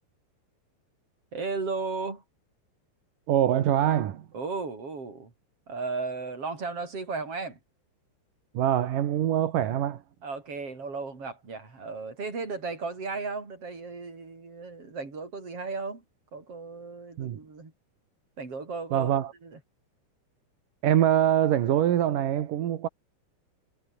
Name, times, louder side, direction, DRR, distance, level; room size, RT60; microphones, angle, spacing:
voice 1, 1.3-2.2 4.3-5.3 5.7-7.6 10.2-16.0 16.3-17.7 18.4-19.2 19.4-19.6, right 4 dB, 30° right, 6.2 m, -35 dB
voice 2, 3.3-4.3 8.5-10.0 17.2-17.4 18.9-19.3 20.8-22.9, right 11 dB, 60° right, 2.3 m, -24 dB
omnidirectional pair, 6.0 m